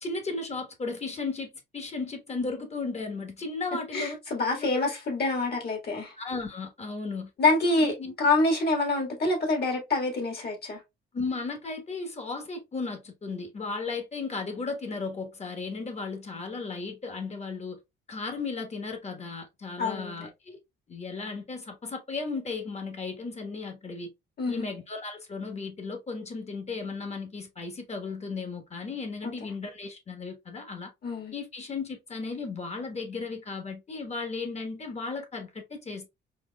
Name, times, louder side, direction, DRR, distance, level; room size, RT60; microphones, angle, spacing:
voice 1, 0.0-4.2 4.6-4.7 6.2-7.3 7.7-8.1 11.1-17.8 18.1-20.6 20.9-24.1 24.5-30.9 31.3-36.1, left 4 dB, 35° left, 1.1 m, -35 dB
voice 2, 3.9-6.1 7.4-7.9 8.2-10.8 19.8-20.3 24.4-24.7 29.4-29.5 31.0-31.4, left 2 dB, 55° left, 1.7 m, -26 dB
4.4 x 2.5 x 2.2 m
cardioid pair, 90°, 20 cm